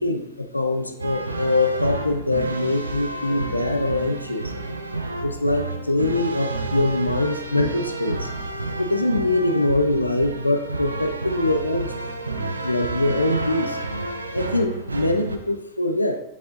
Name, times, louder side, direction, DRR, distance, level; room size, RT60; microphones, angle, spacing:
voice 1, 0.0-4.5 5.2-8.3 8.8-11.9 12.6-13.8 14.3-16.2, left 2 dB, 85° left, 7 dB, 0.5 m, -23 dB
sound 1, 1.0-15.4, right 2 dB, 80° right, 0.6 m, -30 dB
6.9 x 6.6 x 2.5 m, 0.85 s
figure-of-eight pair, 90°, 0 cm